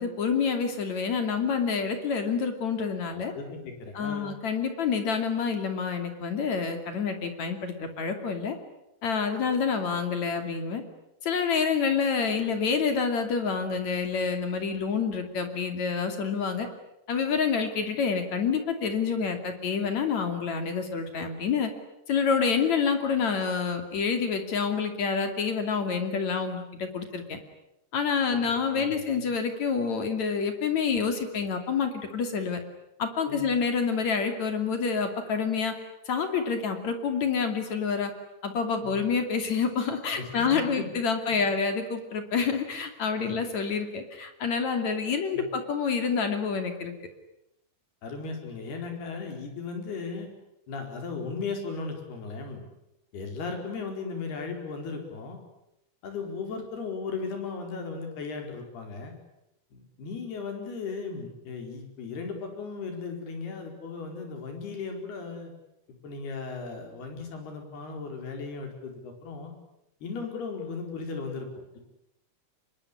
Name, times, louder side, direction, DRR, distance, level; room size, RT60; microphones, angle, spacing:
voice 1, 0.0-3.3 4.0-8.6 9.0-10.8 11.2-16.7 17.1-21.7 22.1-27.4 27.9-32.6 33.0-35.7 36.1-38.1 38.4-46.9, left 5 dB, 45° left, 7 dB, 3.5 m, -28 dB
voice 2, 3.1-4.3 28.3-29.2 33.3-33.5 38.8-39.0 40.2-40.9 43.2-43.3 45.0-45.5 48.0-50.3 50.7-52.6 53.1-55.4 56.0-59.1 59.7-65.5 66.0-69.5 70.0-71.5, left 4 dB, 65° left, 4 dB, 6.4 m, -36 dB
26.0 x 22.5 x 9.9 m, 0.85 s
omnidirectional pair, 5.0 m